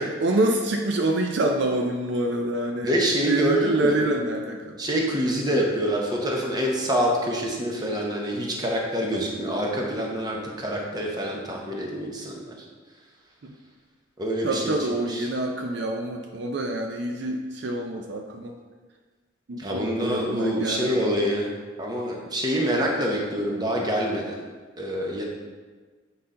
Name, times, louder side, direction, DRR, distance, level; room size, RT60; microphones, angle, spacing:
voice 1, 0.0-2.9 3.2-4.8 13.4-13.5 14.4-18.5 19.5-21.1, right 1 dB, 60° right, 2 dB, 0.5 m, -26 dB
voice 2, 2.8-4.1 4.8-12.6 14.2-14.8 15.1-15.3 19.6-21.5 21.8-24.3 24.8-25.2, equal, 20° right, -1 dB, 0.9 m, -26 dB
7.8 x 4.1 x 3.8 m, 1.4 s
head